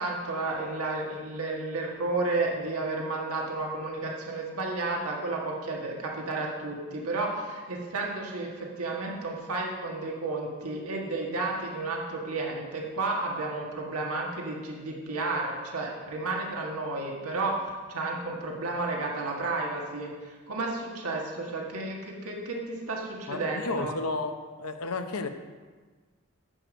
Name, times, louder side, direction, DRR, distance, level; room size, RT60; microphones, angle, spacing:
voice 1, 0.0-23.9, right 2 dB, 80° right, -1 dB, 1.6 m, -32 dB
voice 2, 23.3-24.3 24.6-25.3, left 3 dB, 80° left, 7 dB, 0.8 m, -32 dB
9.8 x 7.6 x 5.2 m, 1.4 s
head